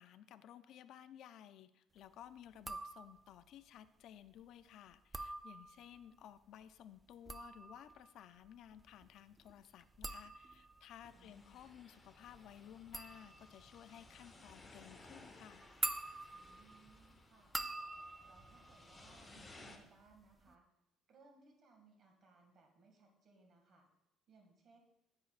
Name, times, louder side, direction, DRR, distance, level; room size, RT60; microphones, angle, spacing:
voice 1, 0.0-15.6, left 10 dB, 65° left, 13 dB, 0.4 m, -56 dB
sound 1, 2.6-3.4 4.9-6.0 7.0-19.7 20.0-20.5, right 2 dB, 10° right, 0.4 m, -47 dB
sound 2, 11.0-19.8, left 2 dB, 20° left, 1.0 m, -60 dB
voice 2, 11.1-11.6 16.3-17.6 18.3-20.7 21.1-23.9 24.3-24.8, right 3 dB, 50° right, 3 dB, 2.0 m, -65 dB
10.5 x 8.8 x 2.4 m, 0.83 s
cardioid pair, 115°, 0 cm